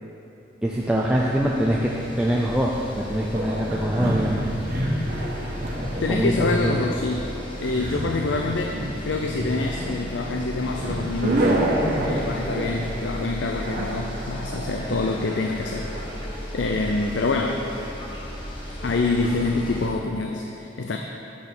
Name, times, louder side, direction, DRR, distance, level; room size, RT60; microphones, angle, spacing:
voice 1, 0.6-1.9 2.2-4.5 6.1-6.8 7.8-7.9, equal, 5° right, -4 dB, 0.4 m, -23 dB
sound 1, 0.8-19.9, equal, 25° left, 1.2 m, -36 dB
sound 2, 3.3-16.0, right 1 dB, 50° right, 1.2 m, -29 dB
voice 2, 6.0-7.3 7.6-11.5 12.0-15.9 16.5-17.7 18.8-21.0, left 3 dB, 75° left, 2 dB, 0.5 m, -26 dB
8.6 x 5.6 x 6.1 m, 2.9 s
head